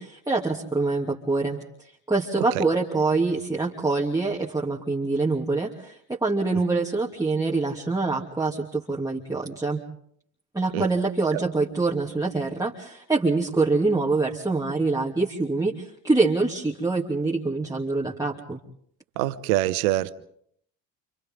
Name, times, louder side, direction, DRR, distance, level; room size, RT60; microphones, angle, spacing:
voice 1, 0.0-1.6 2.1-9.8 10.5-18.6, right 3 dB, 10° right, -3 dB, 2.8 m, -25 dB
voice 2, 19.2-20.1, right 15 dB, 75° right, 15 dB, 1.1 m, -24 dB
29.0 x 27.5 x 3.9 m, 0.67 s
hypercardioid pair, 55°, 42 cm